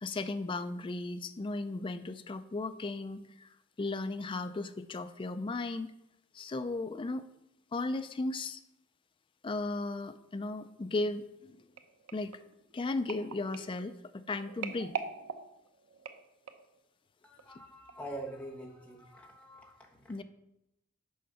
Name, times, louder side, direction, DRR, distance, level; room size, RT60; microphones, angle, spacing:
voice 1, 0.0-3.5 3.8-5.9 6.3-7.2 7.7-8.6 9.4-11.6 12.1-12.4 12.7-14.9 20.1-20.2, left 2 dB, 25° left, 11 dB, 0.3 m, -36 dB
sound 1, 11.8-16.8 17.4-17.6 17.9-18.0, right 6 dB, 85° right, 0.7 m, -43 dB
voice 2, 17.2-20.2, right 1 dB, 5° left, -2 dB, 1.2 m, -45 dB
6.5 x 5.4 x 5.5 m, 0.86 s
head